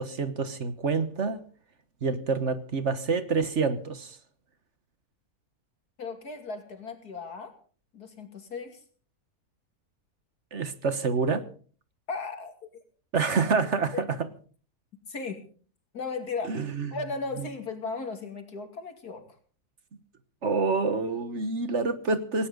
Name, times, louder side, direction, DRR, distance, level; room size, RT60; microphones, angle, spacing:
voice 1, 0.0-1.4 2.0-4.2 10.5-11.5 13.1-14.1 16.5-17.0 20.4-22.5, right 4 dB, 50° right, 12 dB, 1.5 m, -27 dB
voice 2, 6.0-7.5 7.9-8.8 12.1-12.8 13.9-14.0 15.1-15.4 15.9-16.6 16.9-19.2, left 4 dB, 85° left, 6 dB, 3.2 m, -36 dB
18.5 x 17.5 x 3.9 m, 0.41 s
omnidirectional pair, 1.6 m